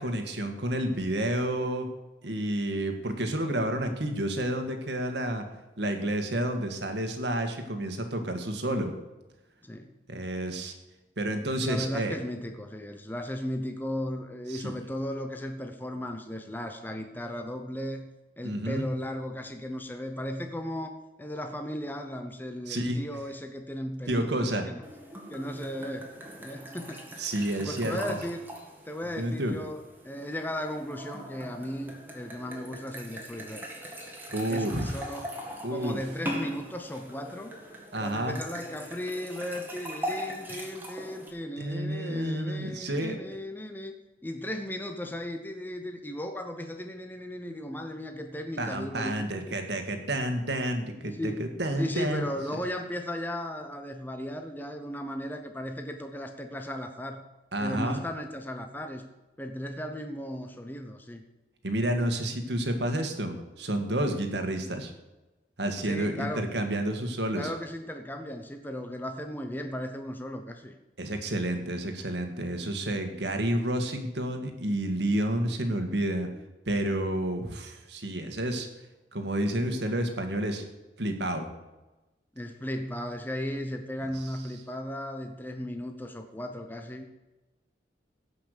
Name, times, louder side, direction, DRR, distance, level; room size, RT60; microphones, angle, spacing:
voice 1, 0.0-1.9 2.2-5.4 5.8-8.9 10.1-10.7 11.2-12.2 14.5-14.8 18.4-18.9 22.7-23.0 24.1-24.6 27.2-28.0 29.2-29.5 34.3-35.1 35.6-36.0 37.9-38.4 41.6-43.2 48.6-52.3 57.5-58.0 61.6-64.9 65.6-67.5 71.0-76.3 76.7-78.7 79.1-80.6 81.0-81.5 84.2-84.3, right 1 dB, 75° right, 6 dB, 1.8 m, -30 dB
voice 2, 9.6-9.9 11.7-18.1 18.4-24.8 25.3-26.1 26.4-27.1 27.6-28.5 28.8-33.7 34.5-35.3 35.7-37.5 38.0-44.0 44.2-49.6 51.0-51.5 51.8-57.2 57.6-59.1 59.4-61.2 65.8-66.5 67.3-70.7 82.3-87.1, equal, 10° left, 5 dB, 0.8 m, -36 dB
sound 1, 24.8-41.3, equal, 10° right, 1.9 m, -41 dB
16.5 x 5.8 x 6.7 m, 1.1 s
head